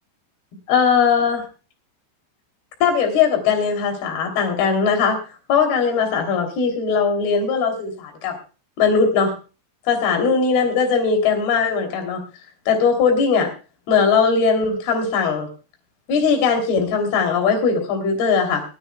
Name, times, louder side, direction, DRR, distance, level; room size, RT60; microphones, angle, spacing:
voice 1, 0.7-1.4 2.8-5.2 5.5-8.3 8.8-9.3 9.9-12.2 12.7-13.5 13.9-15.5 16.1-18.6, left 5 dB, 55° left, 3 dB, 4.7 m, -19 dB
20.0 x 16.5 x 2.3 m, 0.34 s
omnidirectional pair, 5.8 m